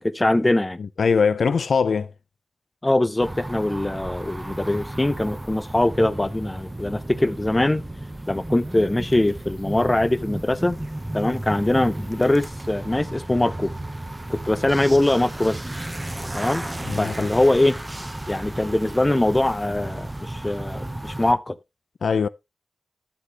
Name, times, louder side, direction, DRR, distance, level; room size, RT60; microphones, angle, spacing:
voice 1, 0.0-0.8 2.8-7.8 8.3-10.8 11.1-13.7 14.3-15.6 16.3-16.7 17.0-17.8 18.3-21.6, left 1 dB, 15° left, 0.6 m, -22 dB
voice 2, 0.8-2.1 16.8-17.3 22.0-22.3, left 5 dB, 65° left, 0.4 m, -22 dB
sound 1, 3.2-21.3, right 1 dB, 15° right, 0.8 m, -34 dB
11.5 x 7.5 x 2.9 m
wide cardioid pair, 110°, 0 cm